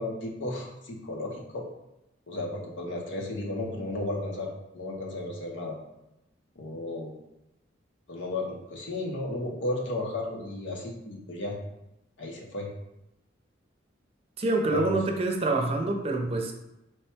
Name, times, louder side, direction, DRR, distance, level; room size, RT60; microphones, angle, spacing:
voice 1, 0.0-1.7 2.3-5.8 6.6-7.1 8.1-11.6 12.2-12.7 14.7-14.8, left 2 dB, 70° left, 0 dB, 0.9 m, -34 dB
voice 2, 14.4-16.5, right 2 dB, 30° right, 2 dB, 0.6 m, -26 dB
4.6 x 2.2 x 4.4 m, 0.91 s
head